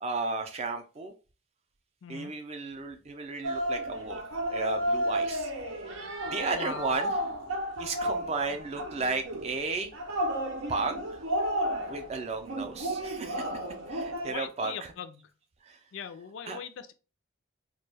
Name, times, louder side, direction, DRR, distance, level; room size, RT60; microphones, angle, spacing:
voice 1, 0.0-1.1 2.1-4.2 4.5-5.5 6.3-7.1 7.8-9.9 10.7-11.2 11.9-13.6 13.9-14.9 15.6-15.8 16.5-16.6, right 3 dB, 30° right, 5 dB, 0.3 m, -34 dB
voice 2, 2.0-2.3 6.5-6.9 14.3-15.3 15.9-16.9, left 7 dB, 70° left, 10 dB, 0.3 m, -40 dB
sound 1, 3.4-14.3, equal, 80° right, 0.5 m, -32 dB
2.2 x 2.1 x 3.2 m, 0.33 s
head